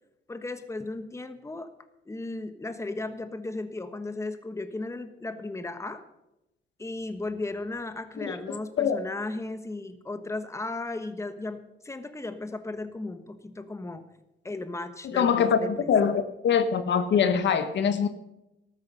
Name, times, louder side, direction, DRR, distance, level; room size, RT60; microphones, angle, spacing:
voice 1, 0.3-1.7 2.1-6.0 6.8-14.0 14.4-15.9, left 2 dB, 15° left, 1.2 m, -35 dB
voice 2, 15.0-18.1, left 7 dB, 65° left, 1.2 m, -23 dB
14.0 x 13.0 x 5.5 m
cardioid pair, 90°, 20 cm